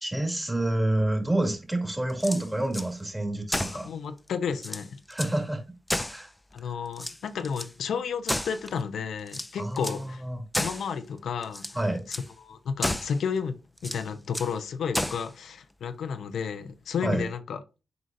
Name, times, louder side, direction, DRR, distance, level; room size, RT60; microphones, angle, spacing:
voice 1, 0.0-3.9 5.1-5.6 6.1-6.3 9.6-10.4 11.7-12.0 17.0-17.3, right 1 dB, 15° right, 2.3 m, -28 dB
sound 1, 2.1-2.9 3.5-3.9 4.3-4.4 4.6-5.4 5.9-6.6 6.9-7.7 8.3-8.8 9.3-10.0 10.5-10.9 11.4-11.8 12.1-12.3 12.8-13.2 13.8-14.5 14.9-15.3, left 1 dB, 15° left, 0.6 m, -32 dB
voice 2, 3.7-4.9 6.5-10.2 10.5-11.6 12.1-12.2 12.4-17.6, left 6 dB, 80° left, 0.6 m, -32 dB
7.9 x 4.9 x 2.6 m
supercardioid pair, 45°, 0 cm